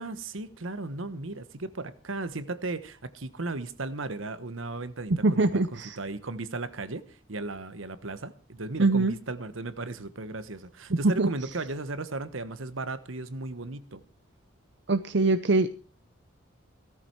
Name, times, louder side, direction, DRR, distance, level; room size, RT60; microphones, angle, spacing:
voice 1, 0.0-14.0, right 2 dB, 80° right, 1.2 m, -36 dB
voice 2, 5.1-6.0 8.8-9.1 10.9-11.3 14.9-15.7, right 2 dB, 60° right, 0.7 m, -23 dB
17.0 x 13.5 x 4.7 m
head